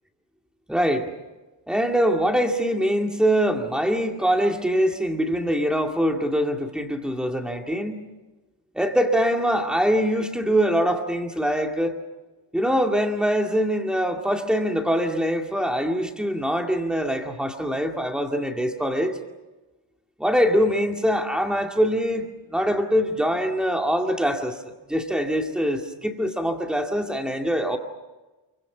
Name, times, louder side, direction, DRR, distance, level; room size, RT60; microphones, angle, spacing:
voice 1, 0.7-1.1 1.7-8.0 8.7-12.0 12.5-19.2 20.2-24.6 24.9-27.8, equal, ahead, 3 dB, 2.2 m, -23 dB
28.5 x 24.5 x 6.2 m, 1.1 s
wide cardioid pair, 175°, 50 cm